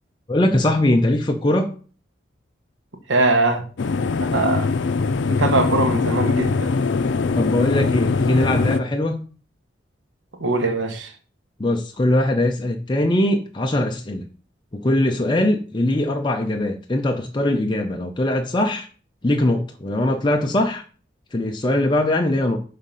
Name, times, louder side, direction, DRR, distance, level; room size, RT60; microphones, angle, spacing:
voice 1, 0.3-1.7 7.4-9.2 11.6-14.3 14.7-18.9 19.2-20.8 21.3-22.6, left 1 dB, 25° left, 0.5 m, -21 dB
voice 2, 3.1-3.6 4.3-4.7 5.3-6.7 10.4-11.1, right 2 dB, 90° right, 1.1 m, -21 dB
sound 1, 3.8-8.8, left 4 dB, 80° left, 0.5 m, -22 dB
5.8 x 3.6 x 5.2 m
head